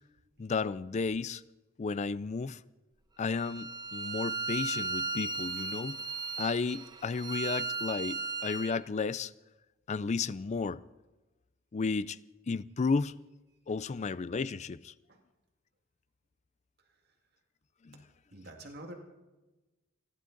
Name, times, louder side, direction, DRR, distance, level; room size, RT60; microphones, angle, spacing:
voice 1, 0.4-1.4 1.8-2.6 3.2-6.0 6.4-9.3 9.9-10.8 11.7-12.2 12.5-13.2 13.7-14.9 17.8-18.0, left 4 dB, 35° left, 0.4 m, -33 dB
Bowed string instrument, 3.4-8.8, right 4 dB, 20° right, 0.8 m, -36 dB
voice 2, 18.3-18.9, right 1 dB, 50° right, 2.1 m, -46 dB
28.5 x 11.5 x 3.9 m
head